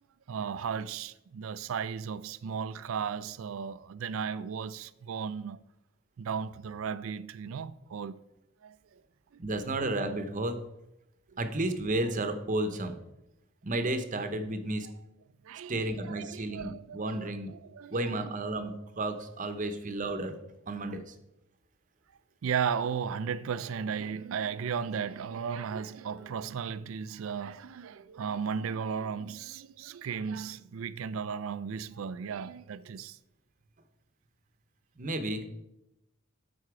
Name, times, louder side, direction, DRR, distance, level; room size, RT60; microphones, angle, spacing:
voice 1, 0.3-5.6 6.2-8.2 8.6-9.0 14.8-14.9 15.4-18.3 20.8-21.0 22.4-33.2, right 6 dB, 75° right, 0.4 m, -35 dB
voice 2, 9.4-10.6 11.4-13.0 13.6-14.9 15.7-17.5 17.9-20.3 20.7-21.0 35.0-35.4, right 2 dB, 40° right, 0.8 m, -32 dB
13.0 x 4.3 x 4.8 m
head